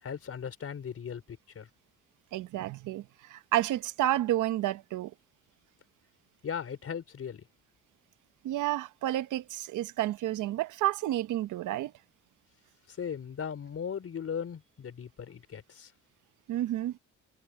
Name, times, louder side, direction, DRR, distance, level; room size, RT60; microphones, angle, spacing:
voice 1, 0.0-1.7 6.4-7.4 12.9-15.9, left 7 dB, 50° left, 4.2 m, -38 dB
voice 2, 2.3-5.1 8.4-11.9 16.5-17.0, right 14 dB, 80° right, 0.9 m, -30 dB
cardioid pair, 90°, 30 cm